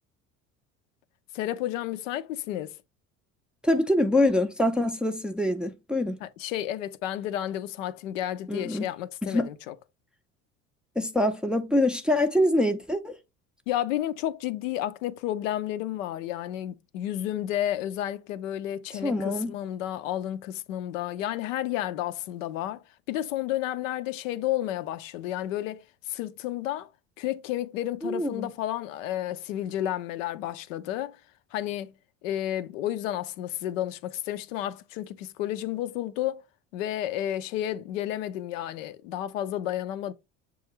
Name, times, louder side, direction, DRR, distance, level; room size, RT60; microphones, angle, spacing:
voice 1, 1.3-2.8 6.2-9.7 13.7-26.9 27.2-31.2 31.5-31.9 32.2-36.4 36.7-40.1, left 12 dB, 80° left, 0.5 m, -31 dB
voice 2, 3.6-6.2 8.5-8.9 9.2-9.5 11.0-13.2 19.0-19.5 28.0-28.5, left 1 dB, ahead, 0.4 m, -25 dB
6.9 x 2.4 x 2.9 m
hypercardioid pair, 70°, 38 cm